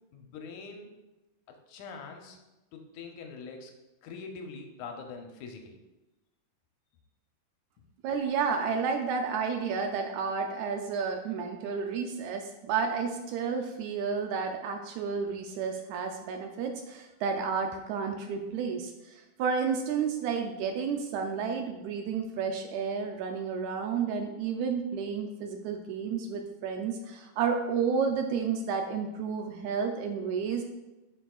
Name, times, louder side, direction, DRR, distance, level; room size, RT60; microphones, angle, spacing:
voice 1, 0.1-0.9 1.5-2.4 2.7-3.7 4.0-5.8, left 4 dB, 75° left, 4 dB, 2.0 m, -43 dB
voice 2, 8.0-30.6, right 6 dB, 80° right, 4 dB, 1.7 m, -31 dB
7.9 x 6.2 x 2.3 m, 1.0 s
omnidirectional pair, 3.7 m